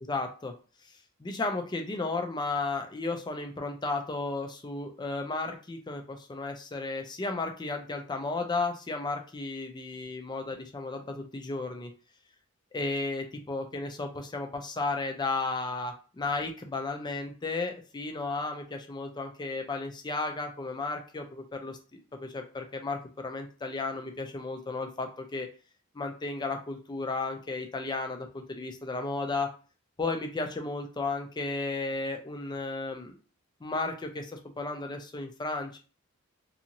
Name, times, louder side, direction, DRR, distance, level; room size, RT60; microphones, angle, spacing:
voice 1, 0.1-0.5 1.2-11.9 12.7-25.5 25.9-29.5 30.0-33.1 33.6-35.8, left 3 dB, 20° left, 4 dB, 0.4 m, -34 dB
2.6 x 2.4 x 2.8 m, 0.35 s
head